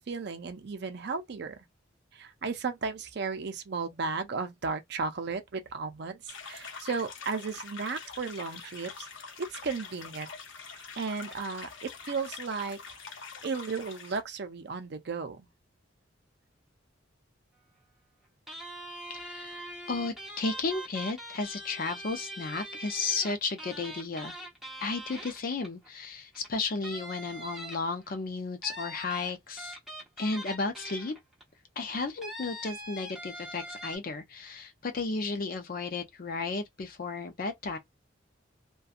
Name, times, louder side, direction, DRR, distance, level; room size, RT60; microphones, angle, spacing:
voice 1, 0.0-1.6 2.1-9.1 9.4-10.3 10.7-15.5, right 4 dB, 60° right, 0.5 m, -35 dB
sound 1, 6.3-14.2, left 5 dB, 75° left, 0.8 m, -45 dB
sound 2, 18.5-25.9 26.3-26.5 26.8-28.1 28.6-31.4 32.2-34.0, equal, ahead, 1.0 m, -42 dB
voice 2, 19.1-24.4 24.8-29.8 30.2-31.2 31.8-37.8, left 3 dB, 50° left, 0.5 m, -34 dB
2.6 x 2.2 x 2.4 m
head